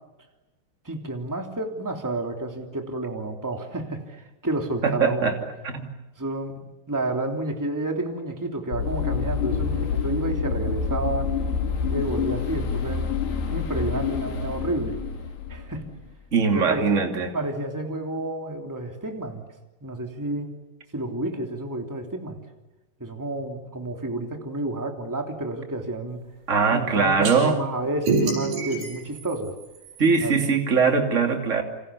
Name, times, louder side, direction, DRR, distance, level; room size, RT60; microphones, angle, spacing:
voice 1, 0.8-5.4 6.2-11.3 11.8-13.1 13.5-15.0 15.5-15.8 16.5-17.0 17.3-19.4 19.8-20.5 20.9-22.4 23.0-26.2 26.7-29.5 30.2-30.6, right 2 dB, 5° right, 3 dB, 2.3 m, -30 dB
voice 2, 4.8-5.4 5.6-5.9 16.3-17.3 26.5-27.6 30.0-31.6, right 5 dB, 20° right, 4 dB, 2.4 m, -21 dB
sound 1, 8.7-16.1, left 6 dB, 70° left, 4.8 m, -27 dB
sound 2, 27.2-27.4 28.1-30.3, right 4 dB, 90° right, 7.9 m, -27 dB
29.0 x 27.0 x 7.1 m, 1.1 s
omnidirectional pair, 4.8 m